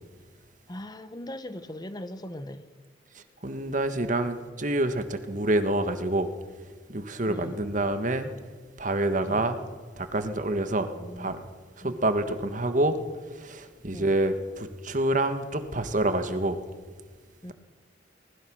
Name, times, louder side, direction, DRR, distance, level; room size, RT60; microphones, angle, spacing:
voice 1, 0.7-2.7 7.3-7.6 9.2-9.4 10.9-11.3 11.8-12.0 13.9-14.1 17.4-17.5, left 1 dB, 20° left, 11 dB, 0.9 m, -39 dB
voice 2, 3.1-6.3 6.9-8.3 8.8-9.6 10.0-10.9 11.2-11.4 11.8-13.0 13.3-16.6, right 1 dB, 45° right, 9 dB, 1.6 m, -27 dB
23.5 x 20.0 x 6.3 m, 1.5 s
head